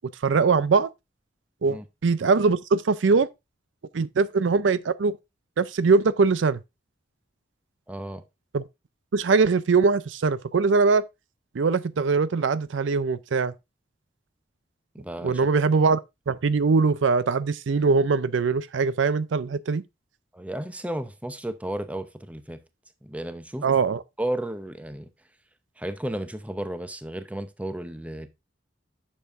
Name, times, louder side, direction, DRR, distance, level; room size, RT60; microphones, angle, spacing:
voice 1, 0.2-0.9 1.6-3.3 3.9-5.2 5.6-6.6 8.5-8.6 9.1-11.1 11.5-13.5 15.2-16.0 16.3-19.8 23.6-24.0, right 4 dB, 80° right, 0.5 m, -22 dB
voice 2, 7.9-8.2 14.9-15.4 20.3-22.6 23.0-23.7 24.2-25.1 25.8-28.3, right 1 dB, 10° right, 0.7 m, -33 dB
10.5 x 6.6 x 2.5 m
head